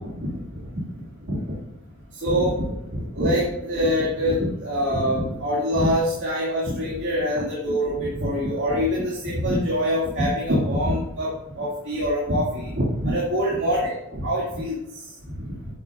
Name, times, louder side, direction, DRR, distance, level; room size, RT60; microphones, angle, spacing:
voice 1, 2.2-2.6 2.9-11.3 11.6-14.8, equal, 60° right, -5 dB, 2.4 m, -24 dB
9.9 x 8.5 x 2.6 m, 0.86 s
head